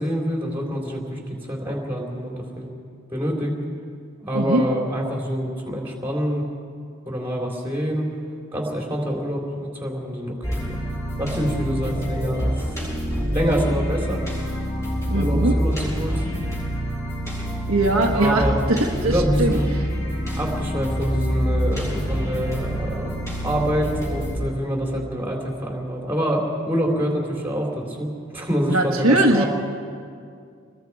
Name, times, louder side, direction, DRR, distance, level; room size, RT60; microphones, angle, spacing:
voice 1, 0.0-2.7 3.1-3.6 4.2-6.4 7.1-8.1 8.5-10.8 11.2-12.6 13.3-14.2 15.1-16.2 18.1-18.7 19.0-19.7 20.4-23.1 23.4-29.5, equal, 10° right, -1 dB, 3.5 m, -26 dB
voice 2, 4.3-4.6 15.1-15.6 17.7-19.8 28.6-29.4, right 1 dB, 70° right, 0 dB, 1.5 m, -21 dB
sound 1, 10.4-24.4, equal, 10° left, 6.6 m, -26 dB
26.5 x 21.0 x 4.8 m, 2.3 s
head